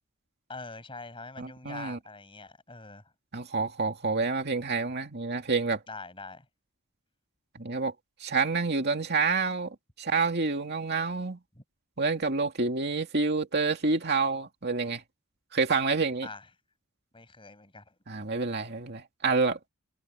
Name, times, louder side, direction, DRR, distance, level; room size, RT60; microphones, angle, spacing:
voice 1, 0.5-3.0 5.9-6.5 11.5-11.6 16.2-16.5 17.1-18.0, left 3 dB, 25° left, 7.2 m, -44 dB
voice 2, 1.4-2.0 3.3-5.8 7.6-7.9 8.2-11.4 12.0-15.0 15.5-16.3 18.1-19.6, right 4 dB, 50° right, 2.4 m, -28 dB
head